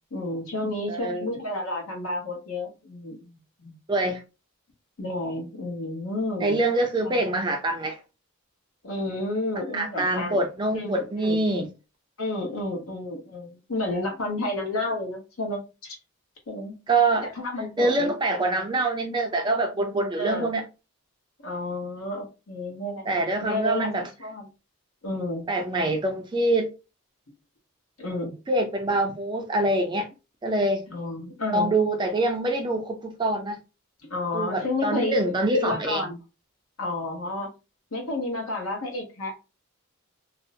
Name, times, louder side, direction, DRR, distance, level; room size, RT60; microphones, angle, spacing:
voice 1, 0.1-3.8 5.0-6.6 7.0-7.4 8.8-10.4 10.7-11.4 12.2-16.0 16.5-16.7 17.2-18.1 20.2-20.5 21.4-23.1 23.4-24.5 25.0-25.5 28.0-28.4 30.9-31.7 34.0-35.2 35.5-36.2 36.8-37.5 37.9-39.5, left 2 dB, 70° left, 0.9 m, -31 dB
voice 2, 0.9-1.3 3.9-4.2 6.4-8.0 9.7-11.7 16.9-17.3 17.8-20.6 23.1-24.1 25.5-26.7 28.5-30.1 30.4-30.8 31.5-33.6 34.3-36.0, right 2 dB, 20° right, 0.4 m, -25 dB
2.6 x 2.0 x 2.5 m
head